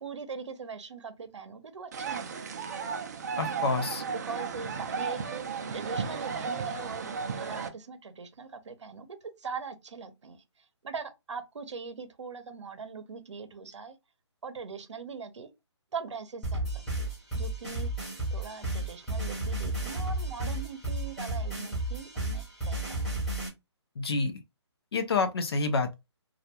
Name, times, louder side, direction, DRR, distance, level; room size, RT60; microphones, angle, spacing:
voice 1, 0.0-2.7 4.2-14.0 14.4-15.5 15.9-23.1, right 5 dB, 80° right, 0.7 m, -41 dB
sound 1, 1.9-7.7, right 5 dB, 35° right, 0.4 m, -34 dB
voice 2, 3.4-4.0 24.0-24.4 24.9-26.0, left 4 dB, 55° left, 0.6 m, -28 dB
sound 2, 16.4-23.5, right 1 dB, 5° left, 0.7 m, -32 dB
2.3 x 2.2 x 2.8 m
hypercardioid pair, 165°, 15 cm